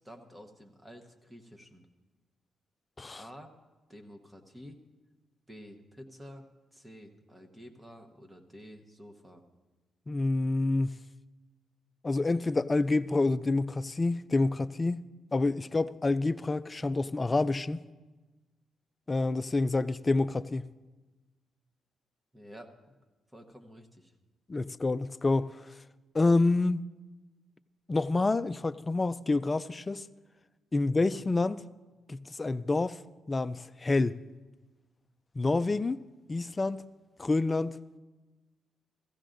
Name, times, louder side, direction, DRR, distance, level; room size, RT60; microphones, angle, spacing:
voice 1, 0.0-1.9 3.2-3.5 3.9-4.8 5.5-9.4 22.3-22.9 23.3-24.1 30.8-30.9, equal, 10° right, 1.1 m, -50 dB
voice 2, 10.1-10.9 12.0-15.0 15.3-17.8 19.1-20.7 24.5-25.6 26.1-26.8 27.9-30.1 30.7-31.6 32.1-33.0 33.3-34.2 35.4-36.0 36.3-36.8 37.2-37.8, left 3 dB, 20° left, 0.3 m, -28 dB
16.5 x 15.0 x 2.6 m
cardioid pair, 135°, 0 cm